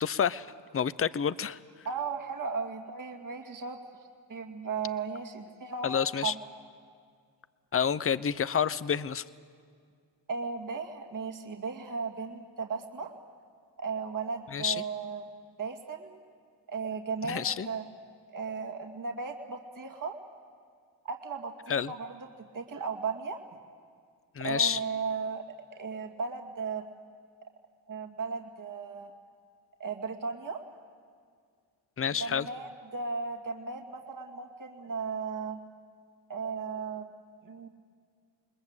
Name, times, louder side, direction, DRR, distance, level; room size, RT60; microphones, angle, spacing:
voice 1, 0.0-0.5 0.7-1.6 5.8-6.3 7.7-9.2 14.5-14.8 17.2-17.7 21.7-21.9 24.4-24.8 32.0-32.5, left 7 dB, 30° left, 17 dB, 0.7 m, -28 dB
voice 2, 1.8-3.8 4.3-6.4 10.3-13.1 13.8-15.2 15.6-16.2 16.7-17.9 18.3-20.2 21.1-22.3 22.5-23.4 24.4-25.4 25.7-26.8 27.9-29.1 29.8-30.6 32.2-35.6 36.3-37.1 37.4-37.7, right 5 dB, 45° right, 3 dB, 2.3 m, -36 dB
28.0 x 20.5 x 8.1 m, 2.1 s
cardioid pair, 65°, 44 cm